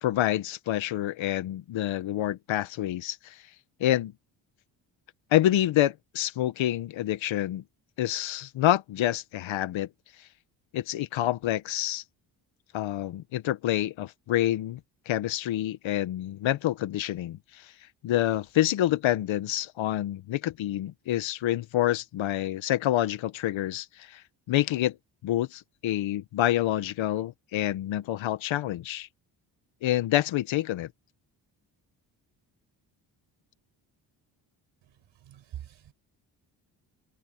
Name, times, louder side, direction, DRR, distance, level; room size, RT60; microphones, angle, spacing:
voice 1, 0.0-3.3 3.8-4.1 5.3-7.6 8.0-9.9 10.7-12.0 12.7-14.8 15.1-17.4 18.0-24.2 24.5-25.0 25.2-29.1 29.8-30.9, left 13 dB, 75° left, 1.8 m, -27 dB
voice 2, 35.2-35.9, right 11 dB, 70° right, 5.7 m, -43 dB
supercardioid pair, 65°, 47 cm